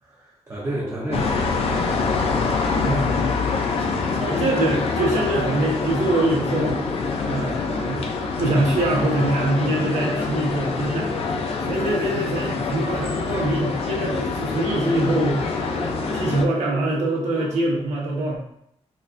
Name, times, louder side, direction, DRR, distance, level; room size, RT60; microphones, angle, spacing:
voice 1, 0.0-2.0 3.8-4.2, right 1 dB, 25° right, -6 dB, 0.7 m, -32 dB
sound 1, 0.5-17.6, equal, 35° left, 1.4 m, -35 dB
sound 2, 1.1-16.4, left 5 dB, 60° left, 0.4 m, -26 dB
voice 2, 4.1-6.8 7.2-8.0 8.4-11.1 11.6-15.8 16.1-18.4, right 1 dB, 85° right, -2 dB, 1.0 m, -24 dB
4.1 x 2.5 x 2.5 m, 0.71 s
wide cardioid pair, 155°, 11 cm